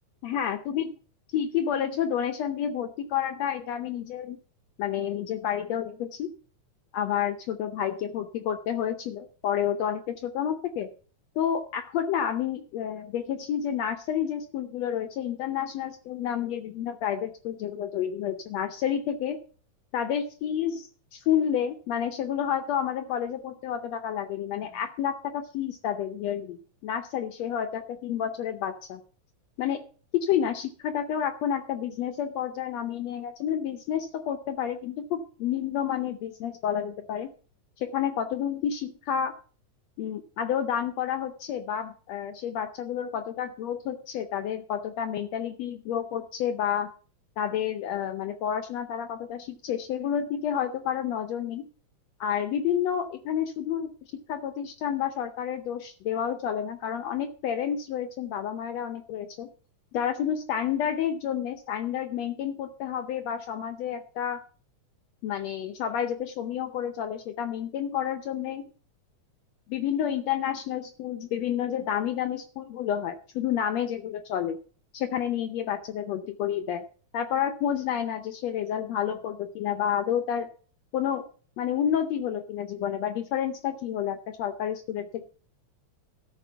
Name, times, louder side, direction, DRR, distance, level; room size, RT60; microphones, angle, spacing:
voice 1, 0.2-0.9 1.3-4.4 4.8-6.3 6.9-10.9 11.4-19.4 19.9-26.6 26.8-29.0 29.6-29.8 30.1-37.3 37.8-39.3 40.0-46.9 47.4-51.7 52.2-59.5 59.9-64.4 65.2-68.7 69.7-74.6 74.9-76.8 77.1-80.5 80.9-81.2 81.6-85.3, left 9 dB, 70° left, 8 dB, 1.8 m, -30 dB
13.0 x 6.1 x 6.8 m, 0.41 s
omnidirectional pair, 3.4 m